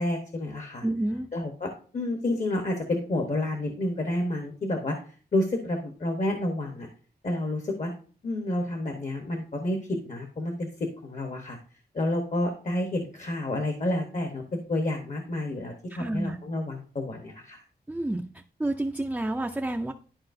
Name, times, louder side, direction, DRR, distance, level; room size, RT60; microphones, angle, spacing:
voice 1, 0.0-0.8 1.3-5.0 5.3-6.9 7.2-7.9 8.2-10.7 11.0-11.6 11.9-17.6, left 1 dB, 45° left, 3 dB, 1.0 m, -29 dB
voice 2, 0.8-1.3 15.9-16.4 17.9-18.2 18.6-19.9, right 1 dB, 10° right, 4 dB, 0.4 m, -29 dB
11.5 x 4.8 x 2.6 m, 0.41 s
wide cardioid pair, 135°, 17 cm